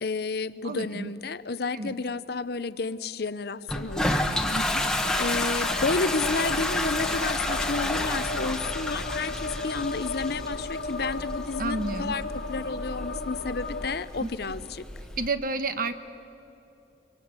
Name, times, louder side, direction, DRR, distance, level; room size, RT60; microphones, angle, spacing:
voice 1, 0.0-4.2 5.2-14.8, left 4 dB, 55° left, 15 dB, 0.7 m, -31 dB
voice 2, 0.6-1.1 1.7-1.9 4.5-4.9 11.6-12.2 14.2-14.3 15.2-16.0, right 3 dB, 50° right, 11 dB, 1.1 m, -30 dB
Toilet flush, 3.7-15.3, left 1 dB, 5° left, 1.2 m, -30 dB
sound 1, 5.0-13.9, left 3 dB, 75° left, 1.4 m, -36 dB
25.0 x 24.0 x 8.1 m, 2.9 s
head